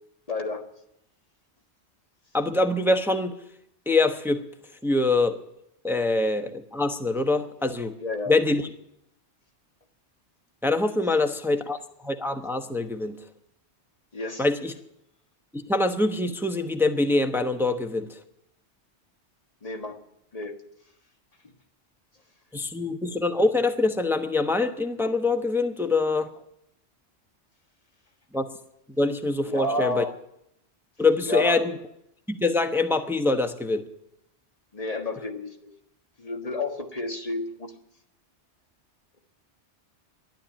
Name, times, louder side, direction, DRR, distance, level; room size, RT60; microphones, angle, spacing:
voice 1, 0.3-0.6 8.0-8.3 14.1-14.4 19.6-20.0 20.3-20.6 29.4-30.2 31.3-31.7 34.7-35.7 36.2-37.7, left 2 dB, 35° left, 4 dB, 1.6 m, -30 dB
voice 2, 2.3-3.3 3.9-4.4 4.8-5.4 5.8-7.9 8.3-8.6 10.6-11.8 12.0-13.2 14.4-14.7 15.5-18.1 22.5-26.3 28.3-28.5 29.0-30.0 31.0-31.7 32.3-33.8, left 2 dB, ahead, 7 dB, 0.9 m, -24 dB
13.5 x 11.5 x 9.0 m, 0.78 s
omnidirectional pair, 1.2 m